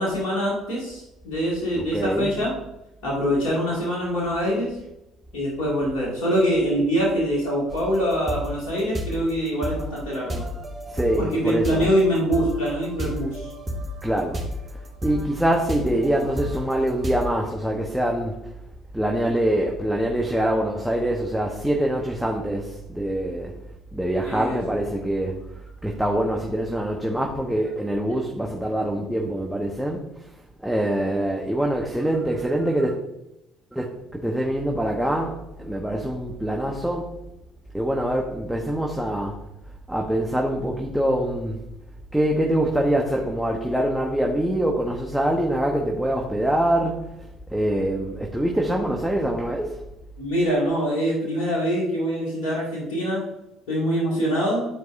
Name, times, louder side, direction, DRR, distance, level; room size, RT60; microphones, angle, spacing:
voice 1, 0.0-2.5 3.0-4.8 5.3-10.5 11.2-13.5 24.3-24.6 50.2-53.2 53.7-54.7, equal, 70° left, -5 dB, 2.4 m, -24 dB
voice 2, 1.7-2.3 10.9-11.9 14.0-14.4 15.0-18.4 18.9-23.5 23.9-25.4 25.8-30.3 30.6-33.0 33.7-33.9 34.1-37.2 37.7-39.3 39.9-41.6 42.1-47.1 47.5-49.8, right 1 dB, 5° right, 0 dB, 1.1 m, -24 dB
sound 1, 7.7-17.3, left 1 dB, 35° right, 2.2 m, -32 dB
10.5 x 4.7 x 2.7 m, 0.91 s
hypercardioid pair, 55°, 0 cm